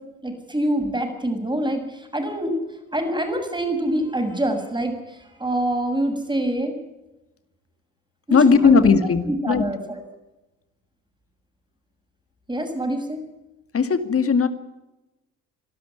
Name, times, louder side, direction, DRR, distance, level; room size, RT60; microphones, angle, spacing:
voice 1, 0.2-6.8 8.3-8.9 9.3-10.0 12.5-13.2, right 1 dB, 10° right, 5 dB, 6.9 m, -25 dB
voice 2, 8.3-9.6 13.7-14.5, left 5 dB, 35° left, 10 dB, 2.3 m, -17 dB
25.0 x 12.5 x 9.6 m, 1.0 s
hypercardioid pair, 55°, 40 cm